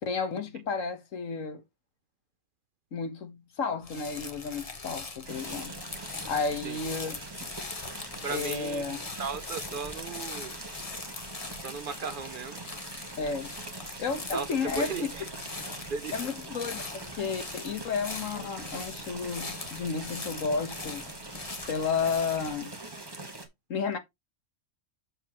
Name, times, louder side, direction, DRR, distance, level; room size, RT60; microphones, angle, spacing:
voice 1, 0.0-1.6 2.9-5.7 6.3-7.2 8.3-9.0 13.2-13.5 14.0-15.1 16.1-21.1 21.7-22.7 23.7-24.0, left 5 dB, 85° left, 1.6 m, -32 dB
sound 1, 3.8-22.6, left 3 dB, 30° left, 1.1 m, -42 dB
sound 2, 5.2-23.5, right 2 dB, 20° right, 1.3 m, -43 dB
voice 2, 8.2-8.8 9.2-10.6 11.6-12.6 14.3-14.5 14.8-15.1 15.9-16.1, right 5 dB, 55° right, 0.6 m, -35 dB
7.2 x 6.8 x 3.0 m
omnidirectional pair, 1.3 m